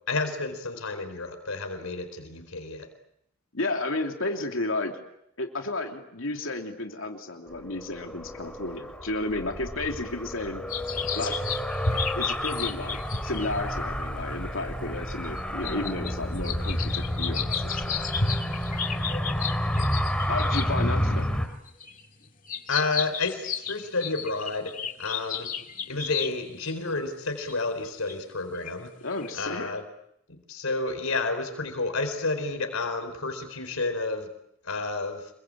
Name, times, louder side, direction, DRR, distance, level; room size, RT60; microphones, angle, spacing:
voice 1, 0.1-2.9 22.7-25.5 25.9-28.9 29.4-29.8 30.3-34.3 34.6-35.3, left 3 dB, 85° left, 7 dB, 4.3 m, -30 dB
voice 2, 3.5-5.0 5.4-10.6 11.1-11.4 12.1-17.8 20.3-21.3 29.0-29.7, left 2 dB, 70° left, 3 dB, 3.1 m, -32 dB
Car, 7.5-21.5, equal, 5° left, 3.1 m, -30 dB
sound 1, 10.7-20.8 21.4-26.9 27.5-27.6 28.1-28.2 28.6-28.7 29.1-29.5, left 5 dB, 40° left, 2.1 m, -33 dB
28.0 x 23.0 x 8.7 m, 0.77 s
head